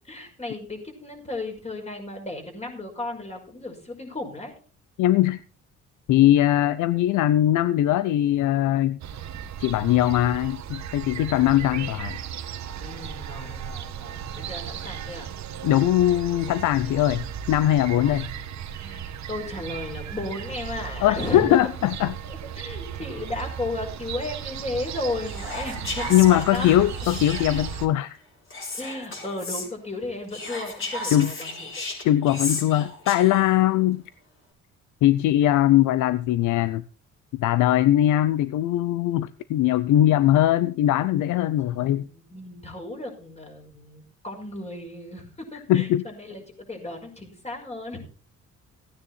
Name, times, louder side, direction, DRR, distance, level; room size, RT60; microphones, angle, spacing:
voice 1, 0.1-4.5 11.3-11.7 12.8-15.3 18.0-18.1 18.8-21.6 22.6-26.8 28.8-31.9 41.3-46.4 46.7-48.0, left 2 dB, 20° left, 5.7 m, -35 dB
voice 2, 5.0-5.4 6.1-9.0 9.6-12.2 15.6-18.3 21.0-22.2 26.1-28.2 31.1-31.3 32.0-34.0 35.0-36.8 37.3-42.1 45.7-46.1, left 13 dB, 85° left, 0.6 m, -21 dB
sound 1, 9.0-27.9, right 8 dB, 65° right, 1.3 m, -36 dB
Whispering, 25.3-27.8 28.5-29.7 30.3-33.6, left 2 dB, 45° left, 6.4 m, -34 dB
16.0 x 9.6 x 4.2 m
cardioid pair, 90°, 30 cm